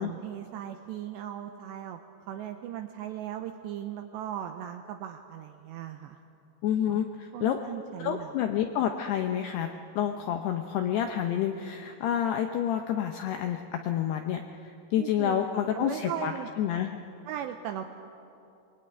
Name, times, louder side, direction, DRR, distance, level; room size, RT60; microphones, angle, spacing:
voice 1, 0.0-2.0 2.3-6.2 6.9-7.0 7.3-8.3 15.0-15.4 15.7-16.5 17.3-17.8, right 10 dB, 85° right, 5 dB, 2.5 m, -37 dB
voice 2, 6.6-7.6 8.0-17.0, left 10 dB, 80° left, 5 dB, 2.3 m, -29 dB
23.5 x 22.5 x 9.3 m, 2.7 s
omnidirectional pair, 5.9 m